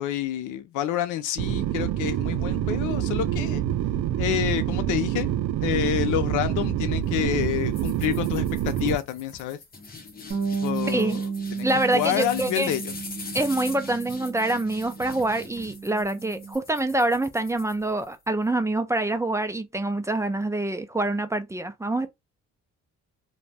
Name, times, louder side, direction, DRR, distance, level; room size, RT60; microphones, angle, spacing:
voice 1, 0.0-3.6 4.2-5.3 5.6-9.6 10.6-11.7 11.9-12.9, left 11 dB, 85° left, 0.5 m, -28 dB
sound 1, 1.4-9.0, right 11 dB, 70° right, 0.5 m, -26 dB
sound 2, 7.7-18.3, left 4 dB, 30° left, 0.8 m, -42 dB
Bass guitar, 10.3-16.6, right 5 dB, 40° right, 1.2 m, -33 dB
voice 2, 10.9-11.2 11.6-12.7 13.3-22.1, right 2 dB, 10° right, 0.4 m, -26 dB
2.5 x 2.2 x 3.3 m
cardioid pair, 90°, 30 cm